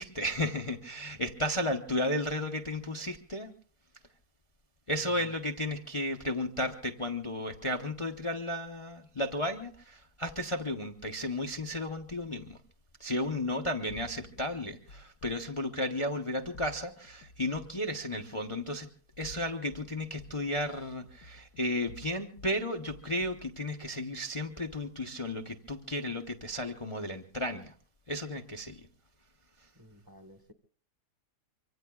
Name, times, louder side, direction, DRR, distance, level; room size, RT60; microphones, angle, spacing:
voice 1, 0.0-3.5 4.9-12.6 13.0-18.9 19.2-27.7 28.1-28.8, left 1 dB, 30° left, 4 dB, 0.6 m, -34 dB
voice 2, 5.0-5.3 29.7-30.5, equal, 15° right, 6 dB, 1.1 m, -54 dB
sound 1, 13.9-15.4 16.5-17.9 19.0-19.9 20.2-22.6 22.9-23.5, left 2 dB, 80° left, 1.6 m, -52 dB
25.0 x 24.5 x 2.3 m, 0.43 s
omnidirectional pair, 1.7 m